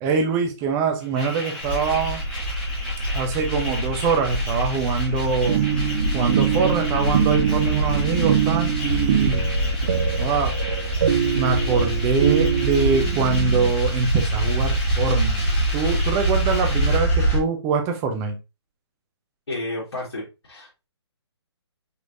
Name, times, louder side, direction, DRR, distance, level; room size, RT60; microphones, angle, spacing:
voice 1, 0.0-2.2 3.1-5.6 6.1-9.5 10.2-10.5 11.3-15.5 15.7-18.4, right 5 dB, 20° right, 4 dB, 0.8 m, -24 dB
sound 1, 1.0-17.0, left 1 dB, 5° left, 1.3 m, -35 dB
sound 2, 1.6-17.4, right 1 dB, 35° left, 2.0 m, -25 dB
sound 3, 5.4-13.7, right 10 dB, 40° right, 0.5 m, -24 dB
voice 2, 19.5-20.9, left 2 dB, 70° left, -6 dB, 2.4 m, -32 dB
5.3 x 3.1 x 2.7 m, 0.26 s
hypercardioid pair, 150°, 14 cm